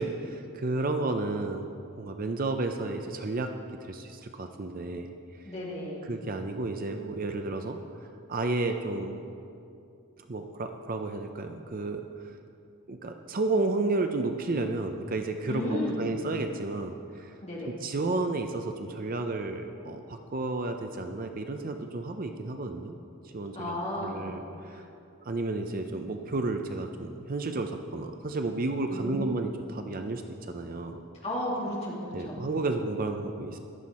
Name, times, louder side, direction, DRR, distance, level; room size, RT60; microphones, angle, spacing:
voice 1, 0.0-1.7 2.0-3.5 3.8-5.1 6.1-7.8 8.3-9.2 10.2-12.4 12.9-17.3 17.7-23.0 23.3-23.8 24.0-24.8 25.2-31.0 32.1-33.6, right 2 dB, 40° right, 6 dB, 0.5 m, -32 dB
voice 2, 5.4-6.1 15.5-16.0 17.4-17.7 23.5-24.3 24.6-24.8 28.9-29.3 31.2-32.4, left 1 dB, 30° left, -5 dB, 2.8 m, -33 dB
14.5 x 11.0 x 4.2 m, 2.6 s
head